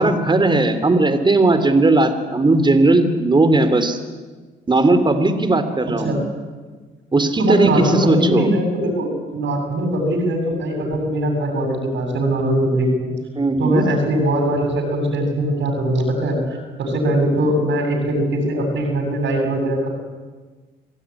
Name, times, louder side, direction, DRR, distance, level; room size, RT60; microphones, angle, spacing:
voice 1, 0.0-4.0 4.7-6.2 7.1-8.5 13.3-13.8, right 2 dB, 25° right, 10 dB, 3.0 m, -17 dB
voice 2, 7.4-13.1 13.6-19.9, right 1 dB, 70° right, 3 dB, 7.7 m, -21 dB
26.5 x 16.5 x 9.9 m, 1.3 s
cardioid pair, 90°, 20 cm